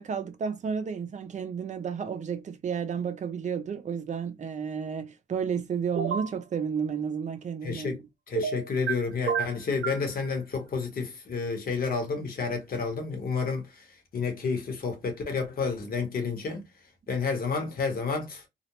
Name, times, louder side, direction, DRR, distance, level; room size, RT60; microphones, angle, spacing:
voice 1, 0.0-8.0, right 6 dB, 35° right, 0.5 m, -32 dB
sound 1, 6.0-6.3 8.4-8.9 9.3-10.1, right 6 dB, 80° right, 0.7 m, -29 dB
voice 2, 7.6-8.0 8.3-13.9 14.1-16.6 17.1-18.5, left 5 dB, 50° left, 1.0 m, -30 dB
2.4 x 2.0 x 2.9 m
cardioid pair, 90°, 20 cm